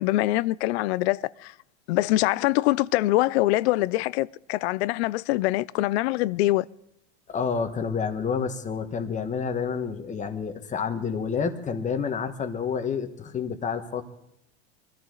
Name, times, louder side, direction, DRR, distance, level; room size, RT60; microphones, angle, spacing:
voice 1, 0.0-1.5 1.9-6.7, left 17 dB, 70° left, 0.6 m, -24 dB
voice 2, 7.3-14.0, left 6 dB, 20° left, 1.5 m, -29 dB
23.0 x 13.5 x 3.9 m
supercardioid pair, 130°, 33 cm